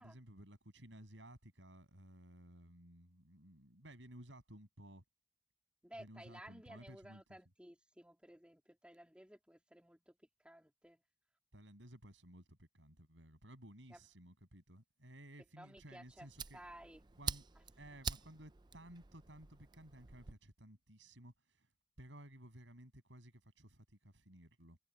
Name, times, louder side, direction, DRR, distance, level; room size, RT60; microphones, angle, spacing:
voice 1, 0.0-5.0 6.0-7.2 11.5-16.6 17.2-17.4 17.8-21.7 22.0-24.8, right 1 dB, 85° right, 7.4 m, -57 dB
voice 2, 5.8-10.2 10.4-11.0 13.9-14.0 15.6-16.3 16.5-17.1, right 1 dB, 5° right, 3.0 m, -56 dB
Fire, 15.8-20.4, right 6 dB, 25° right, 0.5 m, -47 dB
head